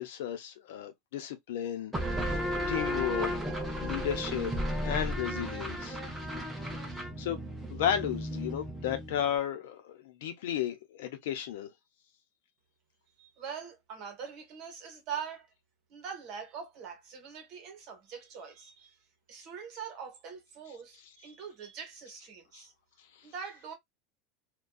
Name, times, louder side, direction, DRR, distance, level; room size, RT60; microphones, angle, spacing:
voice 1, 0.0-2.4 2.7-3.3 3.8-4.5 4.8-6.0 7.2-7.4 7.7-11.7 22.5-22.6, left 10 dB, 80° left, 0.7 m, -34 dB
sound 1, 1.9-9.3, equal, 5° right, 0.6 m, -34 dB
voice 2, 13.2-15.5 15.9-18.9 19.3-22.7 23.2-23.7, right 7 dB, 40° right, 0.9 m, -43 dB
2.5 x 2.3 x 2.2 m
supercardioid pair, 180°, 0 cm